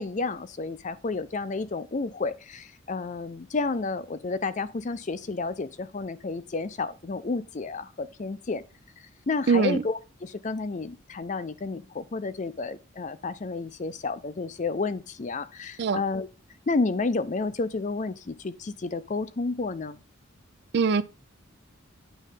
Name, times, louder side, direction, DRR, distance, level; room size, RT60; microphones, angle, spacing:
voice 1, 0.0-8.6 9.3-16.3 16.7-20.0, left 3 dB, 40° left, 0.5 m, -31 dB
voice 2, 9.5-9.8 15.8-16.0 20.7-21.0, right 5 dB, 55° right, 0.4 m, -22 dB
9.1 x 3.2 x 5.6 m
head